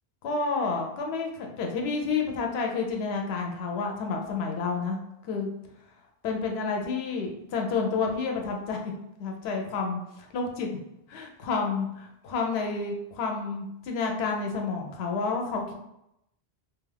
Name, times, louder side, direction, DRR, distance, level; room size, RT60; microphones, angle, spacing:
voice 1, 0.2-5.5 6.2-8.9 9.2-10.7 11.1-15.7, left 4 dB, 75° left, 2 dB, 0.8 m, -30 dB
2.7 x 2.3 x 3.3 m, 0.83 s
omnidirectional pair, 1.1 m